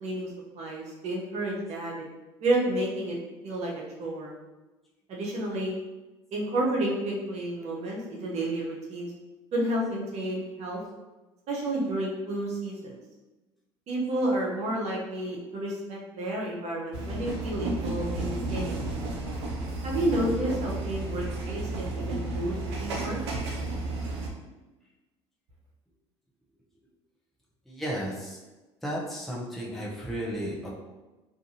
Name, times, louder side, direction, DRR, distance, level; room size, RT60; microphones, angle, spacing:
voice 1, 0.0-2.0 2.4-3.2 3.4-4.4 5.1-5.8 6.3-9.1 9.5-10.8 11.5-13.0 13.9-18.9 19.8-23.2, right 1 dB, 55° right, -3 dB, 0.7 m, -30 dB
sound 1, 16.9-24.3, right 2 dB, 90° right, 0.5 m, -32 dB
voice 2, 27.7-28.4 28.8-30.7, equal, ahead, -5 dB, 0.7 m, -33 dB
2.5 x 2.4 x 2.7 m, 1.1 s
hypercardioid pair, 75°, 14 cm